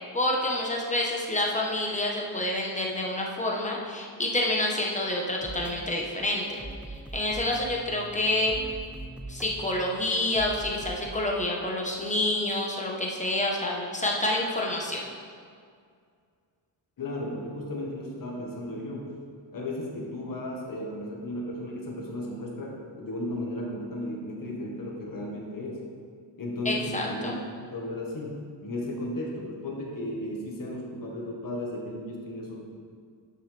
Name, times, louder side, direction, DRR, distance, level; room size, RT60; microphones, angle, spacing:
voice 1, 0.1-6.6 7.1-8.5 9.3-15.1 26.6-27.3, left 1 dB, 15° left, -2 dB, 1.1 m, -28 dB
sound 1, 5.4-11.1, right 2 dB, 5° right, 0.3 m, -42 dB
voice 2, 17.0-19.1 19.5-25.8 26.4-32.6, left 1 dB, 45° left, -2 dB, 1.6 m, -35 dB
11.0 x 6.4 x 3.4 m, 2.2 s
wide cardioid pair, 130°, 45 cm